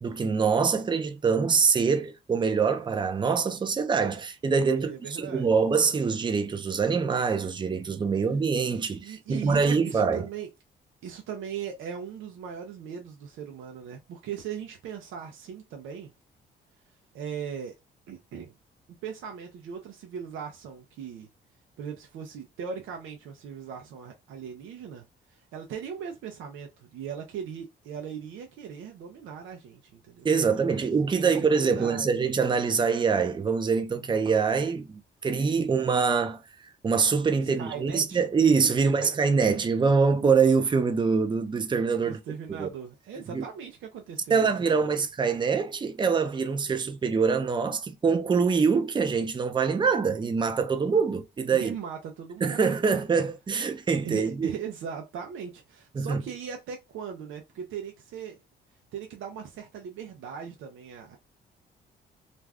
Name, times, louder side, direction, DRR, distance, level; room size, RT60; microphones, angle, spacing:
voice 1, 0.0-10.3 30.2-34.9 35.2-36.4 36.8-42.2 42.5-42.7 43.3-43.4 44.3-51.7 52.4-54.5 56.0-56.2, right 5 dB, 25° right, 0.5 m, -24 dB
voice 2, 4.7-5.5 8.7-10.5 11.0-16.1 17.1-17.8 18.1-18.5 19.0-21.3 21.8-30.9 31.2-32.1 37.6-38.2 38.7-39.1 42.0-45.0 51.5-52.8 54.0-58.4 58.9-61.2, right 7 dB, 80° right, 0.6 m, -39 dB
2.5 x 2.3 x 3.3 m
cardioid pair, 90°, 20 cm